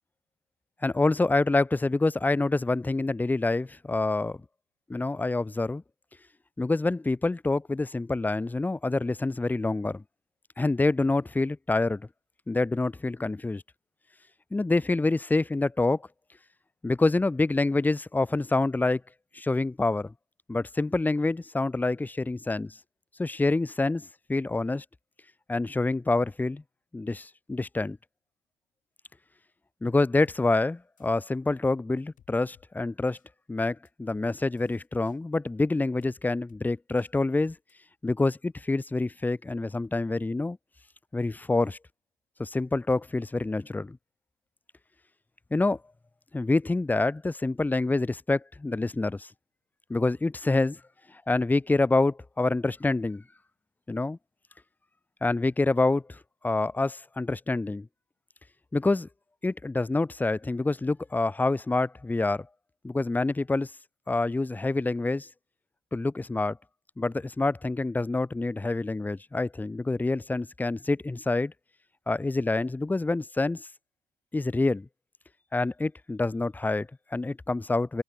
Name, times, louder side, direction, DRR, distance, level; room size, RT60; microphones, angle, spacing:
voice 1, 0.8-4.4 4.9-5.8 6.6-10.0 10.6-12.0 12.5-13.6 14.5-16.0 16.8-19.0 19.3-20.1 20.5-22.7 23.2-24.8 25.5-26.6 26.9-28.0 29.8-33.2 33.5-37.6 38.0-40.6 41.1-41.8 42.4-44.0 45.5-45.8 46.3-49.3 49.9-50.8 51.3-53.2 53.9-54.2 55.2-56.2 56.4-57.9 58.7-59.1 59.4-62.5 62.8-63.7 64.1-65.3 65.9-66.6 67.0-71.5 72.1-73.7 74.3-74.9 75.5-78.0, left 2 dB, 10° left, 0.6 m, -27 dB
sound 1, 30.3-30.4 31.0-31.3 32.2-32.7 33.1-33.3 33.9-34.2 34.6-35.2 36.0-36.2 36.5-36.6 37.0-37.1 37.5-37.7, left 9 dB, 50° left, 5.0 m, -61 dB
open air
cardioid pair, 110°, 17 cm